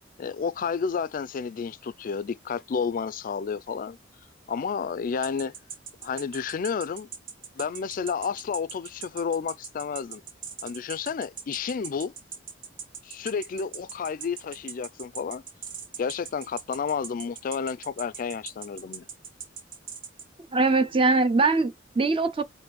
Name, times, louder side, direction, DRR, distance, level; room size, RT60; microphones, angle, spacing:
voice 1, 0.2-4.0 4.5-5.5 6.0-7.1 7.6-10.2 10.6-12.1 13.0-15.4 16.0-19.0, left 6 dB, 45° left, 0.3 m, -31 dB
sound 1, 5.2-20.3, right 6 dB, 75° right, 0.8 m, -40 dB
voice 2, 20.5-22.4, right 3 dB, 30° right, 0.6 m, -22 dB
5.1 x 2.6 x 3.0 m
head